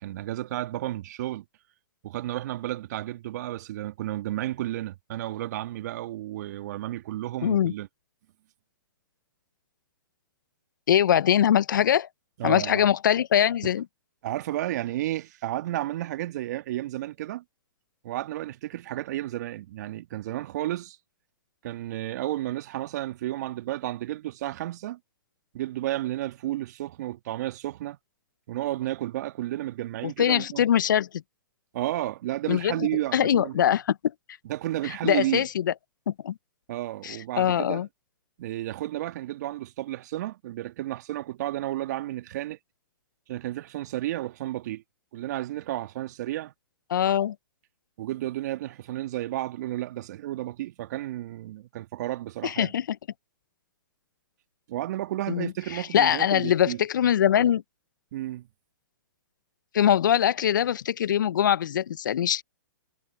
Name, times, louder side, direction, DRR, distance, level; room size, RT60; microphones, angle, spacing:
voice 1, 0.0-1.4 2.0-7.9 12.4-12.9 14.2-17.4 18.0-21.0 21.6-25.0 25.5-28.0 28.5-30.6 31.7-33.6 34.4-35.5 36.7-37.8 38.4-42.6 43.3-44.8 45.1-46.5 48.0-52.7 54.7-56.8 58.1-58.5, right 14 dB, 50° right, 1.9 m, -32 dB
voice 2, 7.4-7.7 10.9-12.1 12.4-13.8 30.0-31.1 32.5-34.0 35.0-35.7 36.1-36.3 37.0-37.9 46.9-47.3 52.4-53.0 55.3-57.6 59.7-62.4, left 10 dB, 65° left, 1.1 m, -23 dB
hypercardioid pair, 120°, 11 cm